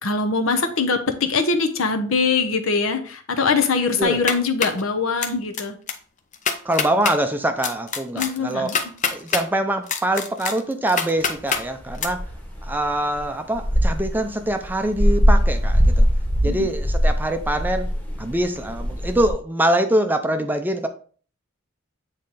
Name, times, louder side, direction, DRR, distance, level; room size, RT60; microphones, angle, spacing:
voice 1, 0.0-5.8 8.1-8.8 16.4-16.7, left 4 dB, 75° left, 7 dB, 0.9 m, -22 dB
sound 1, 4.0-4.8 5.2-5.6 5.9-6.0 6.3-7.2 7.6-9.4 9.9-11.6 12.0-12.1, left 6 dB, 35° left, 0.6 m, -25 dB
voice 2, 6.6-8.7 9.1-12.2 12.7-16.1 16.4-17.9 18.2-20.9, right 1 dB, 10° right, 7 dB, 0.5 m, -24 dB
sound 2, 11.2-19.3, equal, 10° left, 1.3 m, -21 dB
8.3 x 3.2 x 4.0 m, 0.43 s
head